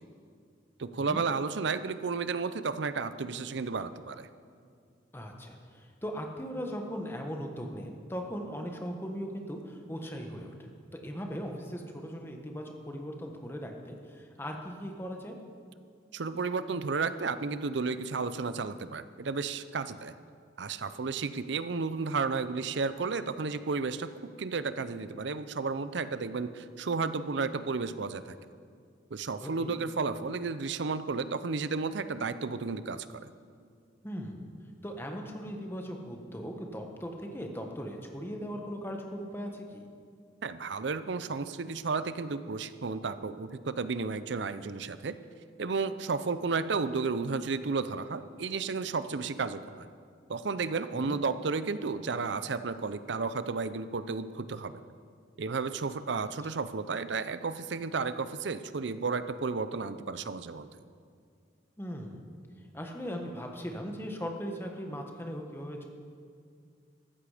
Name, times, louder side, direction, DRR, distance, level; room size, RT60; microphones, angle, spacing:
voice 1, 0.8-4.3 16.1-20.1 20.6-24.1 24.4-28.4 29.1-33.3 40.4-45.2 45.6-49.9 50.3-54.8 55.4-60.7, right 4 dB, 70° right, 13 dB, 0.6 m, -32 dB
voice 2, 5.1-15.4 29.4-29.7 34.0-34.5 34.8-39.9 51.0-51.2 61.8-62.2 62.7-65.9, equal, 10° left, 2 dB, 1.3 m, -39 dB
14.5 x 13.5 x 5.0 m, 2.2 s
head